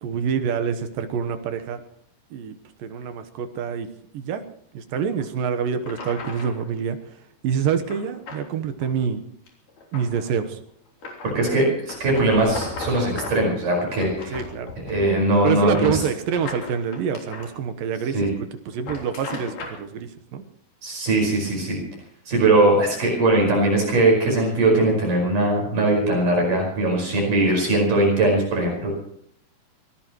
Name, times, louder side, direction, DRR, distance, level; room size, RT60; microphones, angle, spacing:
voice 1, 0.0-1.8 2.3-2.5 2.8-3.9 4.1-4.4 4.7-7.0 7.4-9.2 9.9-10.6 14.3-14.7 15.4-18.2 18.7-20.4, right 7 dB, 70° right, 9 dB, 2.5 m, -26 dB
sound 1, 5.2-5.3 5.8-6.6 7.9-8.4 8.8-9.0 9.5-10.3 11.0-11.4 11.9-13.5 13.9-15.2 15.5-17.5 18.7-19.8, left 3 dB, 50° left, 4.9 m, -36 dB
voice 2, 11.2-14.4 14.9-16.0 18.1-18.3 20.8-21.8 22.3-28.9, right 2 dB, 50° right, 0 dB, 6.7 m, -20 dB
24.5 x 18.0 x 3.1 m, 0.68 s
omnidirectional pair, 4.8 m